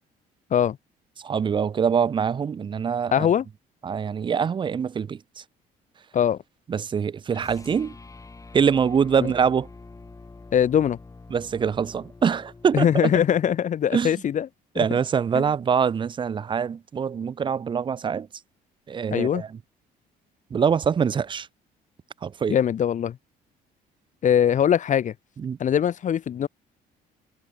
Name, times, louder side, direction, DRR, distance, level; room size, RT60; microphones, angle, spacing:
voice 1, 1.2-3.3 3.8-5.2 6.7-7.9 8.5-9.7 11.3-13.1 13.9-14.1 14.8-18.3 18.9-19.5 20.5-21.5 22.2-22.6 25.4-25.6, right 7 dB, 30° right, 0.5 m, -24 dB
voice 2, 3.1-3.4 6.1-6.4 9.2-9.3 10.5-11.0 12.7-14.5 14.7-15.0 15.3-15.4 19.1-19.4 22.5-23.2 24.2-25.1 25.6-26.5, left 9 dB, 45° left, 1.8 m, -21 dB
sound 1, 7.3-13.7, left 3 dB, 20° left, 4.3 m, -46 dB
cardioid pair, 110°, 17 cm